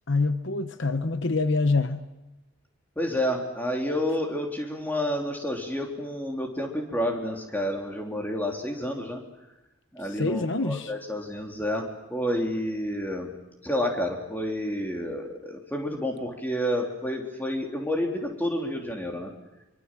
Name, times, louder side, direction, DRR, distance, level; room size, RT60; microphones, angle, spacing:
voice 1, 0.1-2.0 10.0-10.9, left 3 dB, 60° left, 10 dB, 1.0 m, -26 dB
voice 2, 2.9-9.2 9.9-11.8 12.1-13.3 13.6-19.3, equal, 10° left, 2 dB, 3.4 m, -29 dB
25.0 x 24.5 x 7.6 m, 1.0 s
head